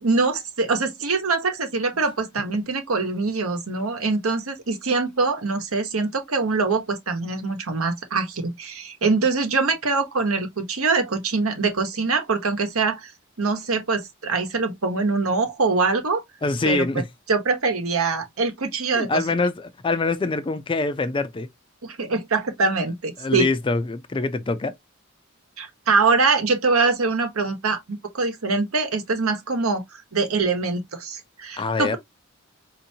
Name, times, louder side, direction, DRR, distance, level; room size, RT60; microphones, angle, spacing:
voice 1, 0.0-13.1 13.4-16.2 16.6-16.9 17.3-19.1 21.8-23.5 25.6-29.8 30.1-32.0, right 4 dB, 80° right, 1.0 m, -23 dB
voice 2, 16.4-17.1 18.9-21.5 23.2-24.7 31.6-32.0, left 3 dB, 25° left, 0.4 m, -24 dB
4.4 x 2.7 x 2.7 m
head